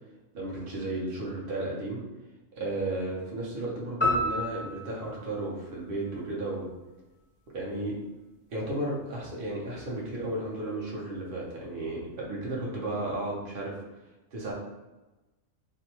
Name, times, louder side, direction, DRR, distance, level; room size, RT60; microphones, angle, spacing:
voice 1, 0.3-2.0 2.5-6.7 7.5-8.0 8.5-13.7 14.3-14.5, right 2 dB, 50° right, -4 dB, 0.9 m, -33 dB
sound 1, 4.0-6.5, left 1 dB, 30° left, 0.5 m, -31 dB
2.7 x 2.2 x 2.8 m, 1.1 s
omnidirectional pair, 1.4 m